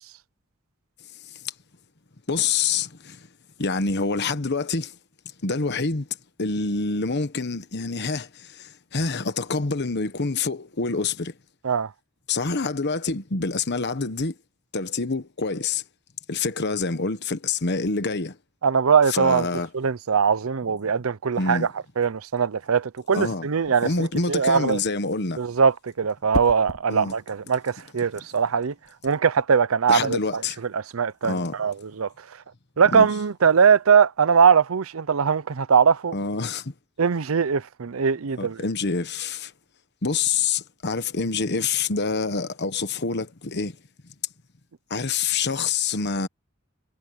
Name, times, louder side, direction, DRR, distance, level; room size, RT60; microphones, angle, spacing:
voice 1, 2.3-3.3 3.6-4.9 5.4-6.1 6.4-11.3 12.3-14.3 14.7-15.8 16.3-18.4 19.1-19.7 21.4-21.7 23.1-23.5 23.8-25.4 26.9-27.1 29.9-30.6 31.2-31.6 32.9-33.1 36.1-36.7 38.4-39.5 40.0-43.8 44.9-46.3, left 4 dB, 55° left, 1.2 m, -26 dB
voice 2, 18.6-19.5 19.7-21.7 22.0-24.8 25.4-28.7 29.0-30.4 30.7-32.1 32.8-36.2 37.0-38.6, right 6 dB, 90° right, 0.6 m, -21 dB
sound 1, 23.5-23.9 26.3-26.9 28.8-29.1, left 1 dB, 80° left, 3.3 m, -32 dB
head